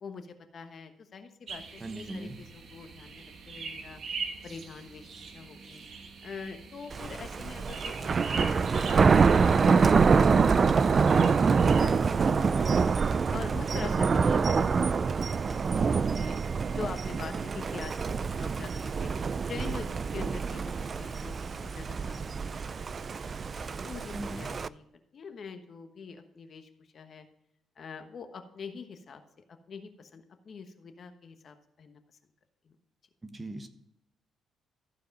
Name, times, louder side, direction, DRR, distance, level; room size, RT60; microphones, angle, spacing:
voice 1, 0.0-4.0 4.4-5.8 6.2-9.5 9.7-12.8 13.3-16.4 16.7-23.4 23.8-24.9 25.1-27.3 27.8-29.2 29.5-32.2 32.6-32.8, left 5 dB, 50° left, 7 dB, 1.1 m, -45 dB
sound 1, 1.5-11.9, right 4 dB, 60° right, 1.3 m, -42 dB
voice 2, 1.8-2.4 13.8-14.7 24.1-24.5 33.2-33.7, right 2 dB, 20° right, 8 dB, 1.1 m, -39 dB
Thunder, 6.9-24.7, right 5 dB, 40° right, 0.3 m, -26 dB
14.0 x 4.8 x 5.3 m, 0.77 s
cardioid pair, 90°, 0 cm